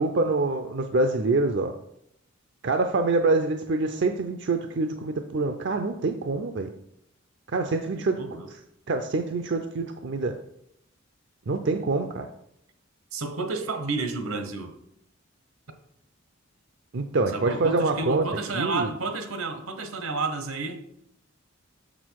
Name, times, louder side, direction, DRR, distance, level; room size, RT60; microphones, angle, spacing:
voice 1, 0.0-1.7 2.6-6.7 7.5-8.2 8.9-10.3 11.5-12.3 16.9-18.2 18.5-18.9, right 3 dB, 55° right, 6 dB, 0.5 m, -25 dB
voice 2, 8.0-8.5 13.1-14.7 17.3-20.8, right 3 dB, 80° right, 7 dB, 1.1 m, -31 dB
6.6 x 6.2 x 4.6 m, 0.76 s
head